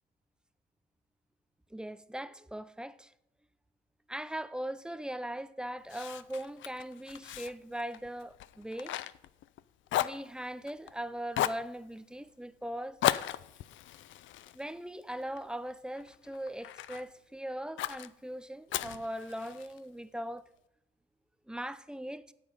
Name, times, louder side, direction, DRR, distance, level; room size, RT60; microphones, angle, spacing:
voice 1, 1.7-3.1 4.1-9.0 10.0-13.0 14.5-20.4 21.5-22.3, right 1 dB, 5° right, 0.5 m, -40 dB
Fire, 5.9-9.6 9.9-10.9 11.3-11.7 13.0-15.4 15.9-17.1 17.8-18.1 18.7-19.8, left 13 dB, 75° left, 0.5 m, -35 dB
9.8 x 7.8 x 5.0 m
cardioid pair, 90°, 20 cm